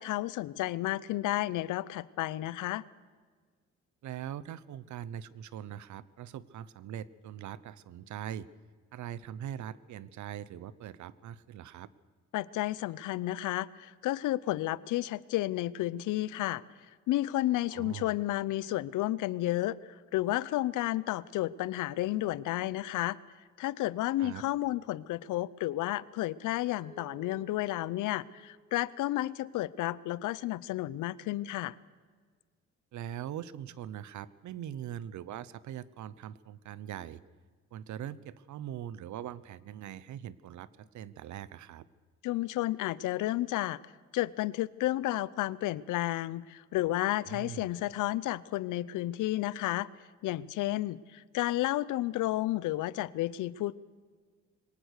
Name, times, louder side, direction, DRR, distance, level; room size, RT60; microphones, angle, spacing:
voice 1, 0.0-2.8 12.3-16.6 17.1-19.8 20.1-23.2 23.6-31.7 42.2-43.8 44.1-49.9 50.2-53.7, left 16 dB, 85° left, 20 dB, 0.7 m, -32 dB
voice 2, 4.0-8.5 8.9-11.9 17.7-18.1 24.2-24.4 32.9-37.2 37.7-41.9 47.3-47.7, right 10 dB, 70° right, 19 dB, 0.9 m, -42 dB
Mallet percussion, 26.7-29.6, right 1 dB, 65° left, 5.0 m, -55 dB
22.5 x 18.5 x 6.6 m, 1.5 s
cardioid pair, 90°, 30 cm